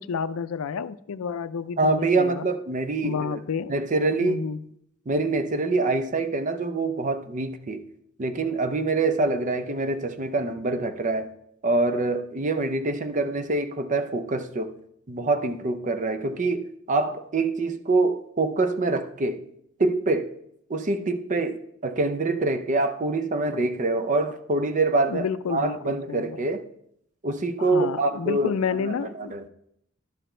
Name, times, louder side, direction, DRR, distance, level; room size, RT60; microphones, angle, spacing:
voice 1, 0.0-2.5 3.0-3.7 4.2-4.6 25.1-26.4 27.6-29.5, left 6 dB, 85° left, 0.4 m, -30 dB
voice 2, 1.8-3.4 3.7-4.4 5.1-7.8 8.2-11.3 11.6-14.7 15.1-19.4 19.8-20.3 20.7-26.7 27.2-29.5, right 3 dB, 35° right, 0.5 m, -25 dB
12.0 x 5.1 x 4.3 m
head